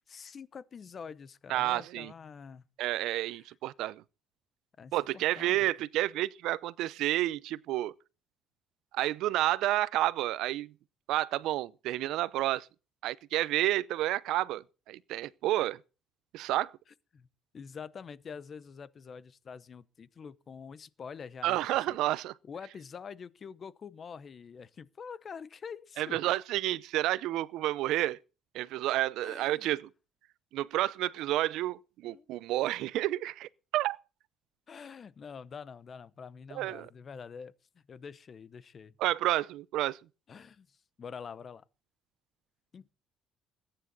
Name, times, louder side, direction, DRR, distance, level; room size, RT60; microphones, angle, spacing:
voice 1, 0.1-2.6 3.3-3.4 4.8-5.7 17.1-17.3 17.5-21.6 21.9-22.0 22.4-26.2 29.2-29.7 32.1-32.3 34.7-38.9 40.3-41.6 42.7-42.9, left 6 dB, 35° left, 0.8 m, -46 dB
voice 2, 1.5-2.1 2.8-4.0 4.9-7.9 8.9-10.7 11.1-12.7 13.0-15.8 16.3-16.7 21.4-22.3 26.0-28.2 28.5-29.9 30.5-34.0 36.5-36.9 39.0-40.0, right 15 dB, 80° right, 0.6 m, -30 dB
20.5 x 9.9 x 4.1 m
cardioid pair, 140°, 0 cm